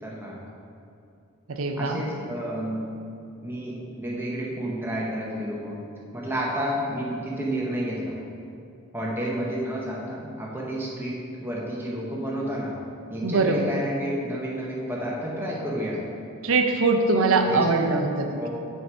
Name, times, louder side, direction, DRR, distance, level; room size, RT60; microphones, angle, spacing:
voice 1, 0.0-0.4 1.8-2.8 3.4-5.8 6.1-8.1 8.9-12.8 13.1-16.0 17.5-17.6 18.4-18.5, equal, 10° right, -4 dB, 0.9 m, -30 dB
voice 2, 1.5-2.0 13.2-13.7 16.4-18.4, right 3 dB, 65° right, 4 dB, 0.6 m, -22 dB
6.4 x 4.7 x 4.5 m, 2.5 s
head